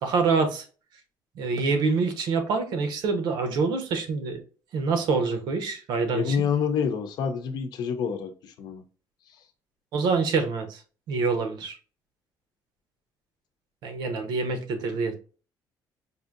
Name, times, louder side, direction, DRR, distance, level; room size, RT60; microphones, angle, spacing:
voice 1, 0.0-0.6 1.4-4.4 4.7-6.4 9.9-10.8 11.1-11.8 13.8-15.1, right 4 dB, 70° right, 0.9 m, -26 dB
voice 2, 6.1-8.8, left 7 dB, 60° left, 0.7 m, -27 dB
4.9 x 2.7 x 2.5 m
cardioid pair, 155°, 8 cm